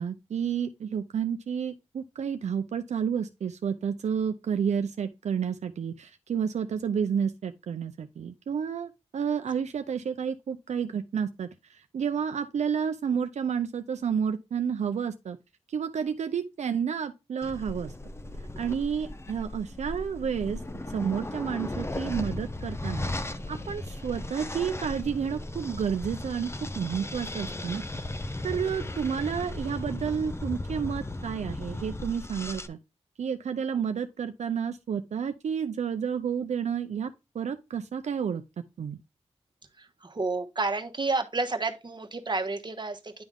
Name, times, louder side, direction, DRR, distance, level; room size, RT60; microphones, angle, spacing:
voice 1, 0.0-15.4 15.7-17.9 18.6-20.6 20.9-23.1 23.5-26.5 26.8-27.8 28.4-32.8 33.2-38.4 38.8-39.0, right 7 dB, 80° right, 0.5 m, -30 dB
sound 1, 17.4-32.7, left 1 dB, 25° left, 0.7 m, -36 dB
voice 2, 39.8-43.2, right 3 dB, 40° right, 1.2 m, -30 dB
10.5 x 3.5 x 3.6 m
cardioid pair, 55°, 11 cm